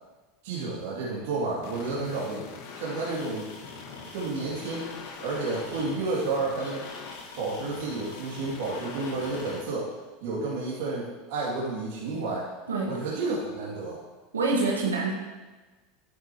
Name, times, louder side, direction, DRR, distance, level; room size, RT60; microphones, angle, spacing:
voice 1, 0.4-2.4 2.7-3.5 4.1-4.9 5.2-6.9 7.4-9.9 10.2-12.5 12.8-14.0, right 3 dB, 65° right, -6 dB, 2.8 m, -31 dB
sound 1, 1.6-9.6, left 5 dB, 60° left, 1.7 m, -43 dB
sound 2, 2.8-9.6, left 4 dB, 85° left, 3.3 m, -45 dB
voice 2, 14.3-15.1, right 3 dB, 90° right, -1 dB, 1.5 m, -25 dB
11.0 x 10.5 x 3.1 m, 1.2 s
hypercardioid pair, 85°, 0 cm